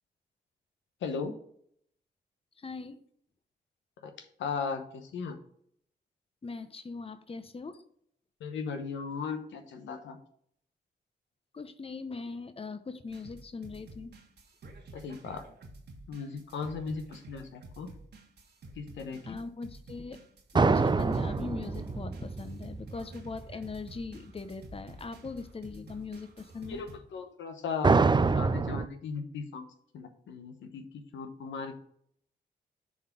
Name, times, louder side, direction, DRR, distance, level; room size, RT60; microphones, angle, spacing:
voice 1, 1.0-1.3 4.0-4.1 4.4-5.4 8.4-10.2 14.9-15.4 16.1-17.9 18.8-19.4 26.6-28.0 28.3-29.6 29.9-30.8 31.1-31.7, left 5 dB, 80° left, 6 dB, 1.0 m, -37 dB
voice 2, 2.6-3.0 6.4-7.8 11.5-14.1 19.3-20.2 20.5-26.8, left 4 dB, 30° left, 10 dB, 0.8 m, -40 dB
sound 1, 13.1-27.0, right 2 dB, 65° right, 1.6 m, -50 dB
sound 2, 20.5-23.6 27.8-28.9, right 4 dB, 25° right, 0.4 m, -26 dB
7.2 x 3.8 x 6.0 m, 0.66 s
supercardioid pair, 50°, 19 cm